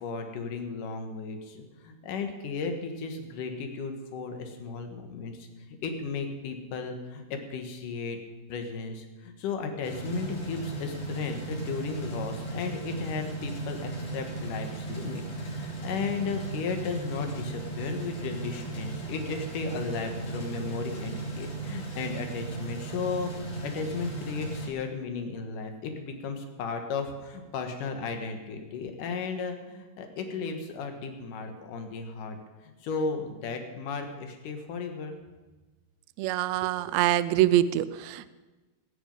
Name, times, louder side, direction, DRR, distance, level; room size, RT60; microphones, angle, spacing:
voice 1, 0.0-5.5 5.8-8.2 8.5-23.3 23.6-32.4 32.8-35.1, left 4 dB, 75° left, 5 dB, 3.0 m, -35 dB
sound 1, 9.8-24.7, right 3 dB, 50° left, 4.2 m, -36 dB
voice 2, 36.2-38.3, right 13 dB, 80° right, 13 dB, 1.6 m, -25 dB
19.5 x 9.7 x 5.4 m, 1.2 s
omnidirectional pair, 3.8 m